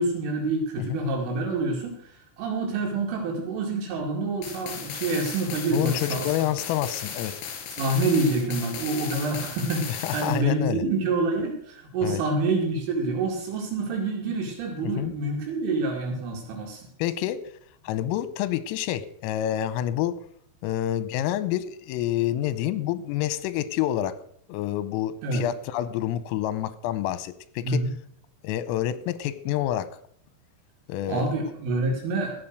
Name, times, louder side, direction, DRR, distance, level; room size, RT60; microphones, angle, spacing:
voice 1, 0.0-2.1 2.4-6.3 7.8-16.8 25.2-25.4 27.6-27.9 31.1-32.4, right 2 dB, 75° right, 0 dB, 4.8 m, -27 dB
sound 1, 4.4-10.4, left 7 dB, 70° left, 4.8 m, -36 dB
voice 2, 5.7-7.3 10.0-10.8 12.0-12.2 14.8-15.1 17.0-17.4 17.8-20.2 20.6-24.2 24.5-27.8 28.4-30.0 30.9-31.3, left 12 dB, 85° left, 15 dB, 3.4 m, -28 dB
16.0 x 7.7 x 6.6 m, 0.65 s
omnidirectional pair, 5.9 m